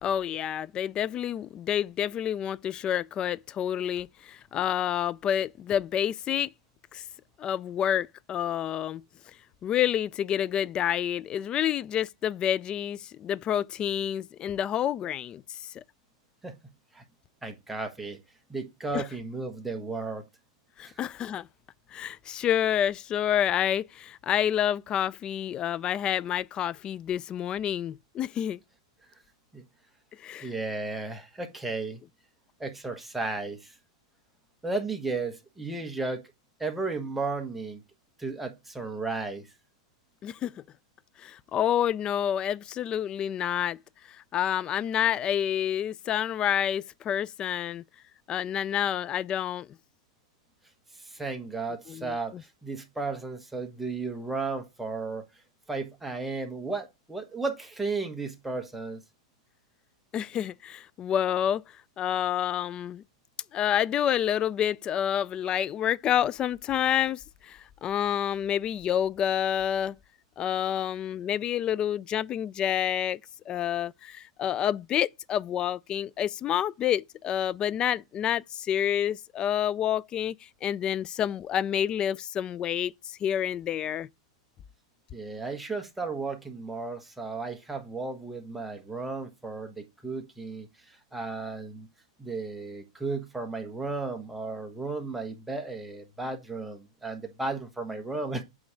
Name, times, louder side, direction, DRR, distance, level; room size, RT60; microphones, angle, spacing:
voice 1, 0.0-6.5 6.9-7.0 7.4-9.0 9.6-15.8 18.9-19.0 20.8-21.5 21.9-28.6 30.2-30.5 40.2-40.6 41.2-43.8 44.1-47.8 48.3-49.7 51.9-52.4 60.1-61.6 62.0-63.0 63.5-70.0 70.4-73.2 73.5-84.1, left 10 dB, 25° left, 0.3 m, -28 dB
voice 2, 17.4-18.2 18.5-20.2 20.8-20.9 29.5-29.6 30.4-32.0 32.6-33.7 34.6-36.2 36.6-37.8 38.2-39.5 51.0-55.2 55.7-59.0 85.1-91.9 92.2-98.4, right 3 dB, 5° right, 1.2 m, -34 dB
8.4 x 3.1 x 6.1 m
hypercardioid pair, 130°, 3 cm